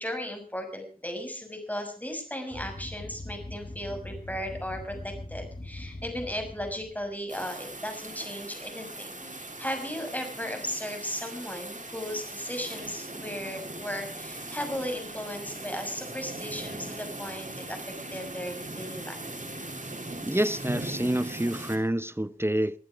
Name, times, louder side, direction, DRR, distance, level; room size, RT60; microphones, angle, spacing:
voice 1, 0.0-19.3, equal, 10° left, 6.3 m, -36 dB
sound 1, 2.5-7.1, left 2 dB, 45° left, 2.0 m, -41 dB
sound 2, 6.9-8.6 8.9-10.8 11.2-19.8 20.1-21.6, left 1 dB, 85° left, 7.2 m, -54 dB
sound 3, 7.3-21.8, right 2 dB, 60° right, 3.2 m, -39 dB
voice 2, 20.2-22.8, right 1 dB, 15° right, 0.7 m, -27 dB
22.0 x 11.0 x 5.0 m
wide cardioid pair, 40°, 15 cm